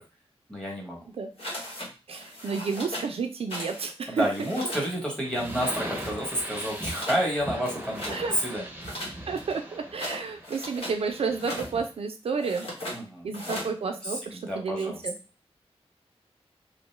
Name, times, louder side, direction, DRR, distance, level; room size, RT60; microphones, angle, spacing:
voice 1, 0.5-1.0 4.1-8.7 12.9-13.6 14.0-15.0, equal, 10° left, -2 dB, 1.0 m, -30 dB
sound 1, 1.4-1.9 2.2-3.1 3.5-3.8 4.1-4.9 5.3-6.1 6.5-7.3 7.6-8.2 8.8-11.0 11.3-11.7 12.4-13.0 13.3-13.7, left 1 dB, 65° left, 1.0 m, -38 dB
voice 2, 2.1-4.3 8.1-8.3 9.3-12.7 13.2-15.1, right 5 dB, 65° right, 5 dB, 0.4 m, -31 dB
sound 2, 5.2-11.9, right 1 dB, 15° right, 0.6 m, -39 dB
2.5 x 2.1 x 3.1 m, 0.32 s
wide cardioid pair, 125°, 11 cm